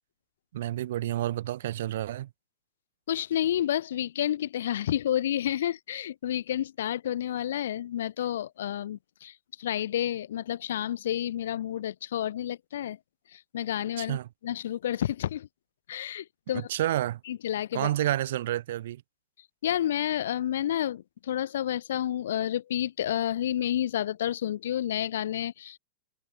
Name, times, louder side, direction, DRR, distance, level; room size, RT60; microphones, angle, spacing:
voice 1, 0.5-2.3 14.0-14.3 16.5-17.2 17.7-19.0, right 13 dB, 60° right, 1.1 m, -29 dB
voice 2, 3.1-13.0 13.3-14.2 14.4-15.5 15.9-16.7 17.3-17.9 19.6-25.8, left 11 dB, 60° left, 2.5 m, -30 dB
figure-of-eight pair, 90°, 0 cm